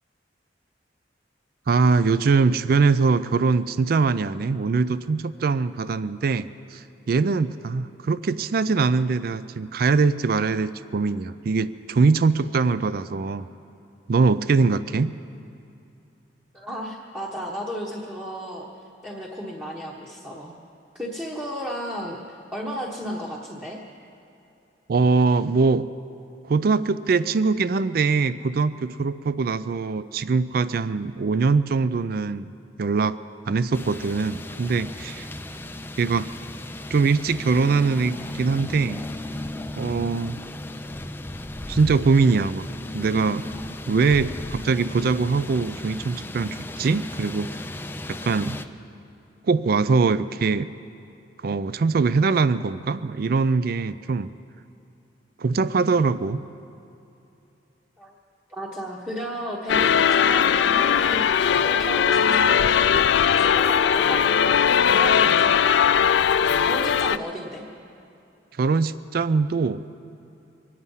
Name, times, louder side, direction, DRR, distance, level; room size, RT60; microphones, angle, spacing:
voice 1, 1.7-13.5 14.1-15.1 24.9-25.9 26.5-32.5 32.8-33.2 33.5-35.3 36.0-36.3 36.9-39.0 39.8-40.4 41.7-42.7 42.9-43.5 43.9-47.6 48.1-48.6 49.5-50.7 51.4-54.3 55.4-56.4 68.6-69.8, right 4 dB, 55° right, 15 dB, 0.4 m, -22 dB
voice 2, 16.5-18.7 19.0-20.5 20.9-23.8 58.0-58.1 58.5-66.3 66.6-67.6, equal, 10° right, -5 dB, 1.2 m, -34 dB
sound 1, 33.7-48.7, left 1 dB, 10° left, 0.5 m, -35 dB
sound 2, 59.7-67.2, left 8 dB, 70° left, 0.4 m, -19 dB
24.5 x 9.4 x 5.6 m, 2.7 s
head